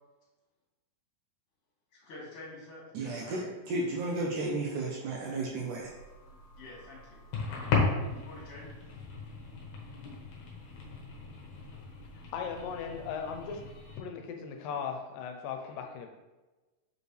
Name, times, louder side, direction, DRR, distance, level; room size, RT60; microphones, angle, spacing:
voice 1, 1.9-3.9 6.6-7.2 8.2-8.8, left 2 dB, 45° left, -5 dB, 2.9 m, -48 dB
voice 2, 2.9-5.9, right 2 dB, 75° right, -2 dB, 2.0 m, -33 dB
sound 1, 5.8-14.0, left 4 dB, 60° left, 2.1 m, -36 dB
voice 3, 12.3-13.6 14.0-16.1, left 6 dB, 80° left, 4 dB, 2.3 m, -37 dB
6.6 x 5.3 x 3.2 m, 1.2 s
omnidirectional pair, 4.2 m